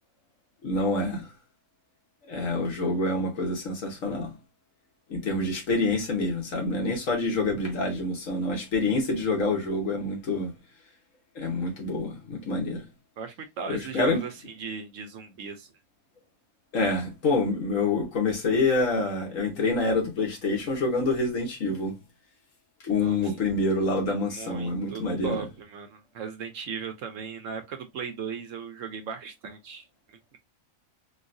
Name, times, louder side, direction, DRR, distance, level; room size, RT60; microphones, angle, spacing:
voice 1, 0.6-1.3 2.3-4.3 5.1-10.5 11.3-12.8 13.7-14.2 16.7-21.9 22.8-25.5, left 2 dB, 65° left, 1.4 m, -27 dB
voice 2, 13.2-15.7 23.0-23.6 24.3-30.4, right 6 dB, 65° right, 0.9 m, -38 dB
3.9 x 2.3 x 2.5 m
omnidirectional pair, 1.6 m